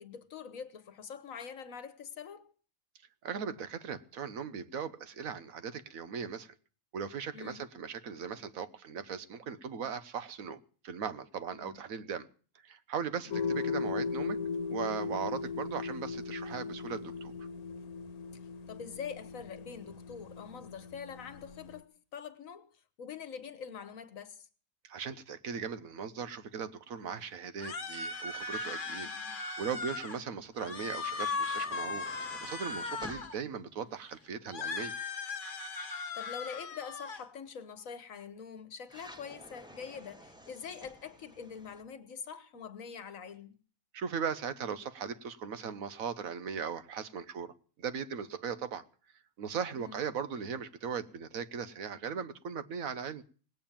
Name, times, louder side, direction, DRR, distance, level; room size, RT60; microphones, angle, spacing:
voice 1, 0.0-2.5 7.3-7.6 11.5-11.8 13.3-13.5 18.7-24.5 29.0-29.4 33.0-33.3 36.1-43.6 49.7-50.0, left 6 dB, 70° left, 1.5 m, -45 dB
voice 2, 3.2-6.5 6.9-12.3 12.6-14.4 14.7-17.3 24.8-29.1 29.6-32.1 32.4-34.9 43.9-47.5 47.8-48.8 49.4-53.2, right 7 dB, 75° right, 1.4 m, -38 dB
sound 1, 13.3-21.8, left 5 dB, 90° left, 1.4 m, -38 dB
sound 2, 27.6-30.2 30.6-33.4 34.5-37.2, left 4 dB, 40° left, 1.2 m, -38 dB
sound 3, 30.4-34.9 38.9-41.8, equal, 5° right, 1.0 m, -54 dB
18.5 x 8.7 x 7.3 m
omnidirectional pair, 1.5 m